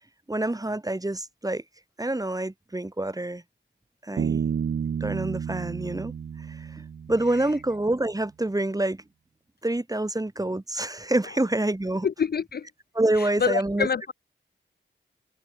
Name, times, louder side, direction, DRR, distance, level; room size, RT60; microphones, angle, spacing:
voice 1, 0.3-1.6 2.0-3.4 4.0-4.4 5.0-6.1 6.5-9.0 9.6-12.1 12.9-13.9, right 1 dB, 15° right, 1.2 m, -27 dB
Bass guitar, 4.2-7.7, right 7 dB, 55° right, 0.5 m, -31 dB
voice 2, 12.0-12.7 13.2-14.1, left 6 dB, 50° left, 0.4 m, -26 dB
cardioid pair, 60°, 21 cm